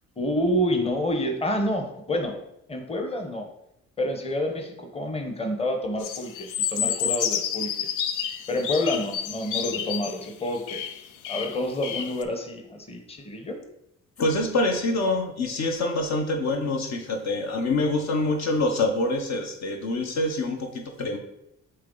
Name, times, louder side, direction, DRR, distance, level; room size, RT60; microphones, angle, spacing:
voice 1, 0.2-2.4 2.7-3.5 4.0-7.9 8.5-10.8 11.3-13.6, left 1 dB, 20° left, 4 dB, 1.0 m, -28 dB
sound 1, 6.0-12.2, left 9 dB, 90° left, 0.5 m, -30 dB
voice 2, 14.2-21.2, left 2 dB, 60° left, 4 dB, 1.0 m, -26 dB
7.7 x 3.3 x 3.8 m, 0.82 s
cardioid pair, 90°, 30 cm